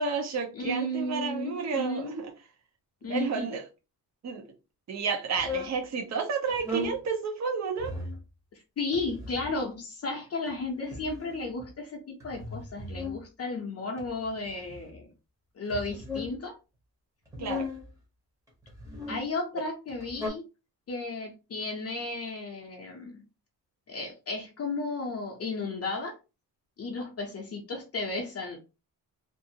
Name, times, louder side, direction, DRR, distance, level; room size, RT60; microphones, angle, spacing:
voice 1, 0.0-2.3 3.0-3.6 4.2-4.4 4.9-7.9 17.4-17.7, right 5 dB, 45° right, 0.7 m, -31 dB
voice 2, 0.5-2.2 3.0-3.5 8.8-15.1 15.5-16.5 19.1-20.5 20.9-23.2 23.9-26.2 26.8-28.6, left 2 dB, 40° left, 0.6 m, -34 dB
sound 1, 5.4-5.8 6.5-7.0 7.8-8.2 8.9-9.6 10.5-11.7 12.2-13.2 14.0-14.9 15.7-16.4 17.3-17.9 18.6-19.2 19.9-20.3, left 2 dB, 10° right, 0.8 m, -37 dB
2.5 x 2.4 x 2.8 m
wide cardioid pair, 175°, 38 cm